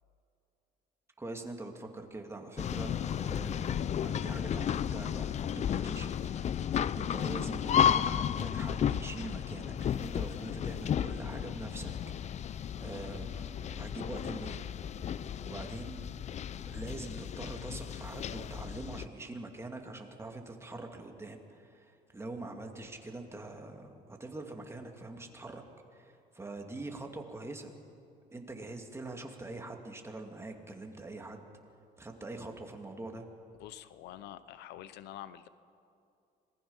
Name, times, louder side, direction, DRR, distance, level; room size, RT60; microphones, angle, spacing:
voice 1, 1.2-11.9 12.8-14.6 15.4-16.0 16.6-25.6 25.9-27.8 28.3-31.4 32.0-33.3, right 2 dB, 15° right, 3 dB, 2.4 m, -44 dB
sound 1, 2.6-19.1, left 9 dB, 40° left, 0.6 m, -33 dB
voice 2, 33.6-35.5, left 12 dB, 85° left, 14 dB, 0.8 m, -46 dB
26.0 x 19.5 x 5.6 m, 2.6 s
cardioid pair, 110°, 17 cm